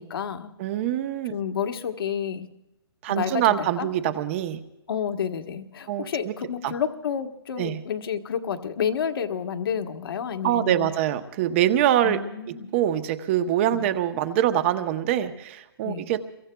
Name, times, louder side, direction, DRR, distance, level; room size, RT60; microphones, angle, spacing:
voice 1, 0.0-0.5 1.3-2.5 3.1-3.9 4.9-10.9 12.0-12.7 13.7-14.0 15.8-16.1, left 7 dB, 60° left, 6 dB, 1.4 m, -30 dB
voice 2, 0.6-1.3 3.0-4.6 5.9-6.3 6.6-6.7 7.6-7.8 10.4-12.2 12.7-16.2, right 11 dB, 30° right, 10 dB, 0.9 m, -24 dB
27.5 x 23.0 x 2.3 m, 0.90 s
hypercardioid pair, 155°, 14 cm